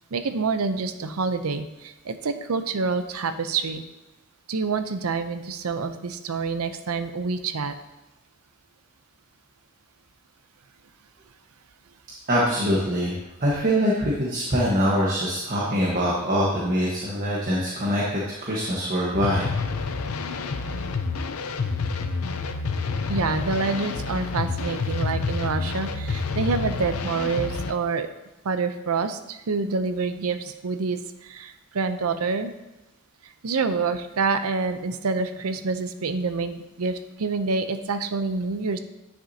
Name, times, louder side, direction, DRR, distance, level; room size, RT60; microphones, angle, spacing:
voice 1, 0.1-3.8 4.5-7.7 23.1-28.1 28.4-32.5 33.2-38.8, right 4 dB, 90° right, 9 dB, 0.6 m, -27 dB
voice 2, 12.3-13.1 13.4-19.4, equal, 40° right, -5 dB, 1.2 m, -23 dB
sound 1, 19.1-27.7, left 4 dB, 85° left, 0.6 m, -28 dB
9.9 x 6.1 x 2.8 m, 0.99 s
head